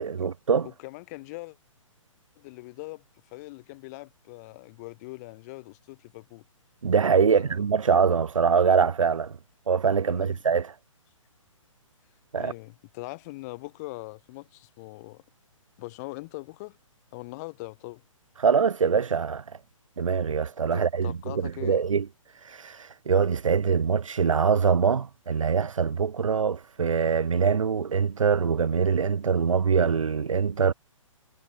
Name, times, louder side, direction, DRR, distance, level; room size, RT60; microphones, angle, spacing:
voice 1, 0.0-0.7 6.8-9.3 9.7-10.7 12.3-12.5 18.4-19.4 20.0-21.1 21.4-22.0 22.4-30.7, right 6 dB, 70° right, 0.5 m, -23 dB
voice 2, 0.6-1.6 2.4-3.0 3.3-6.4 7.3-7.6 10.1-10.4 12.4-15.2 15.8-16.8 17.1-18.0 20.7-21.8, left 23 dB, 30° left, 5.5 m, -41 dB
figure-of-eight pair, 130°, 17 cm